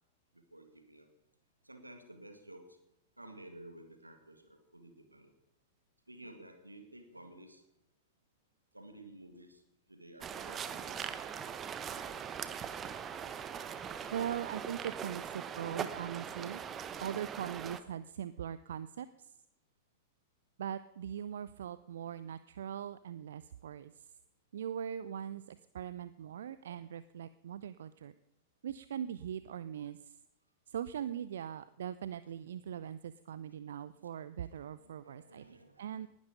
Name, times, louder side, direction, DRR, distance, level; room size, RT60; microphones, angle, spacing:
voice 1, 0.3-1.1 1.6-2.8 3.2-5.3 6.1-7.6 8.7-9.6 9.9-11.9 33.9-34.0 34.8-36.0, right 1 dB, 85° right, 7 dB, 2.2 m, -54 dB
sound 1, 10.2-17.8, right 8 dB, 25° right, 1.1 m, -41 dB
voice 2, 14.1-16.6 17.0-19.3 20.6-23.9 24.5-28.1 28.6-30.1 30.7-35.4 35.8-36.1, right 9 dB, 60° right, 15 dB, 0.5 m, -41 dB
19.5 x 11.5 x 5.3 m, 0.90 s
figure-of-eight pair, 90°, 0 cm